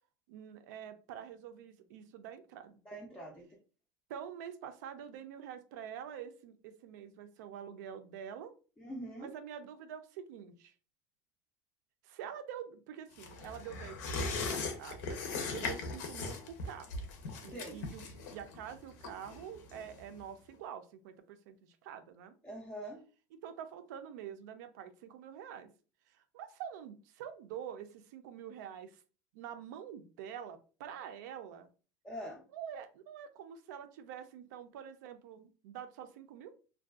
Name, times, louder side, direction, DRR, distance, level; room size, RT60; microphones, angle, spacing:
voice 1, 0.3-2.8 4.1-8.5 9.2-10.7 12.0-15.2 15.5-16.9 17.4-18.0 18.3-22.3 23.4-25.7 26.1-29.0 29.3-31.7 32.5-36.5, right 9 dB, 90° right, 9 dB, 0.4 m, -46 dB
voice 2, 2.9-3.5 8.8-9.3 17.5-17.8 22.4-23.0 32.0-32.4, right 1 dB, 10° left, -2 dB, 0.4 m, -44 dB
sound 1, 13.2-20.2 20.5-20.6, left 3 dB, 80° left, 0.6 m, -39 dB
2.5 x 2.2 x 2.3 m, 0.36 s
cardioid pair, 180°, 9 cm